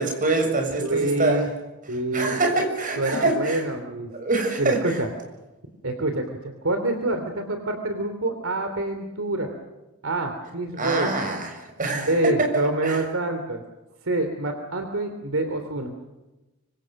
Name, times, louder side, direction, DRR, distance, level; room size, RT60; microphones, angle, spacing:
voice 1, 0.0-1.5 2.1-3.6 4.2-5.0 10.8-13.0, right 2 dB, 40° right, 4 dB, 6.7 m, -25 dB
voice 2, 0.8-1.5 1.9-2.7 3.0-4.1 4.6-5.1 5.8-9.5 10.0-11.1 11.9-13.6 14.0-15.9, right 2 dB, 65° right, 6 dB, 3.1 m, -26 dB
25.5 x 25.5 x 6.6 m, 1.0 s
head